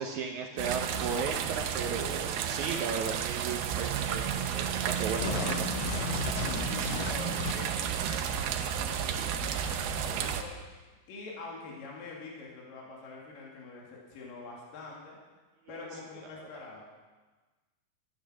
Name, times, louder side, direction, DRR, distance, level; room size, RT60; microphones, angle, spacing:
voice 1, 0.0-5.7 15.7-15.9, right 5 dB, 70° right, 3 dB, 1.8 m, -35 dB
sound 1, 0.6-10.4, right 8 dB, 90° right, 2.8 m, -32 dB
sound 2, 5.2-7.9, left 12 dB, 85° left, 2.5 m, -36 dB
voice 2, 6.6-15.2 15.7-16.8, left 3 dB, 65° left, -3 dB, 3.9 m, -45 dB
13.5 x 11.0 x 6.2 m, 1.3 s
omnidirectional pair, 4.3 m